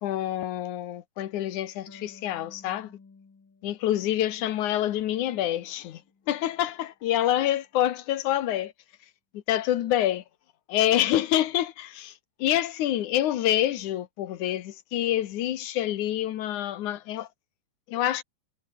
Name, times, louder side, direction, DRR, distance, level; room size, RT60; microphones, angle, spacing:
voice 1, 0.0-2.9 3.6-6.0 6.3-8.7 9.3-10.2 10.7-12.1 12.4-17.3 17.9-18.2, left 12 dB, 75° left, 2.6 m, -27 dB
Harp, 1.9-5.2 5.6-6.7, left 4 dB, 35° left, 3.8 m, -54 dB
omnidirectional pair, 3.6 m